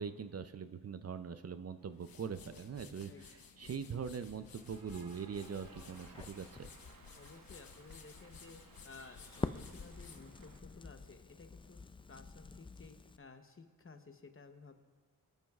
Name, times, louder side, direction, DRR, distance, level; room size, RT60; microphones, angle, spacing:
voice 1, 0.0-3.1 3.6-6.7, right 6 dB, 45° right, 11 dB, 0.5 m, -42 dB
sound 1, 1.8-11.1, left 6 dB, 85° left, 0.9 m, -56 dB
Cheering / Applause, 4.3-10.6, right 5 dB, 70° right, 1.0 m, -60 dB
Crackle, 5.4-13.2, left 3 dB, 15° left, 0.3 m, -48 dB
voice 2, 7.2-8.6 8.8-11.8 12.1-14.8, left 4 dB, 40° left, 7 dB, 0.9 m, -55 dB
24.0 x 10.5 x 2.4 m, 1.5 s
wide cardioid pair, 95°, 34 cm